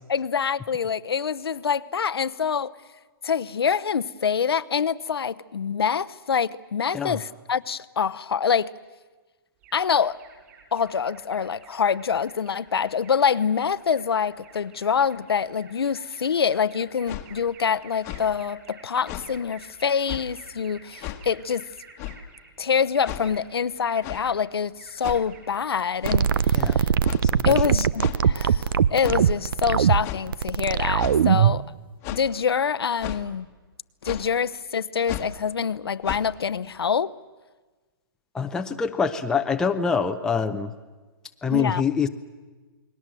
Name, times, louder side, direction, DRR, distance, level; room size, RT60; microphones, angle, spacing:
voice 1, 0.1-2.7 3.2-8.7 9.7-10.2 10.7-21.6 22.6-26.9 27.4-31.7 32.1-33.5 34.0-37.1 41.5-41.8, left 7 dB, 90° left, 0.9 m, -25 dB
Alarm, 9.6-27.2, right 5 dB, 35° right, 6.8 m, -51 dB
sound 1, 17.1-17.3 18.0-18.3 19.1-19.3 20.0-20.2 21.0-21.2 22.0-22.2 23.0-23.3 24.0-24.2 25.0-25.3 26.0-26.2 27.0-27.2 28.0-28.2 29.0-29.2 30.0-30.2 31.0-31.2 32.0-32.3 33.0-33.2 34.0-34.3 35.0-35.3 36.0-36.2, left 15 dB, 25° left, 1.3 m, -34 dB
sound 2, 26.0-31.6, right 8 dB, 65° right, 0.7 m, -21 dB
voice 2, 38.3-40.7 41.4-42.1, left 5 dB, 5° left, 0.7 m, -25 dB
29.0 x 20.5 x 7.6 m
hypercardioid pair, 155°, 12 cm